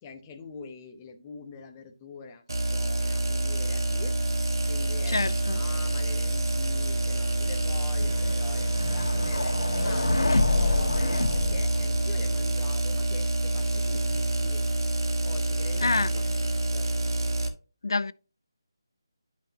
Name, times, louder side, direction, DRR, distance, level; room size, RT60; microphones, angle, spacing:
voice 1, 0.0-2.4 2.7-4.2 4.7-5.2 5.5-14.6 15.2-16.9, left 5 dB, 10° left, 0.7 m, -44 dB
sound 1, 2.5-17.5, right 2 dB, 60° right, 1.4 m, -27 dB
voice 2, 5.1-5.6 15.8-16.1 17.8-18.1, left 3 dB, 65° left, 0.5 m, -26 dB
sound 2, 7.7-12.4, left 2 dB, 90° left, 1.3 m, -28 dB
10.5 x 5.7 x 2.8 m
figure-of-eight pair, 175°, 2 cm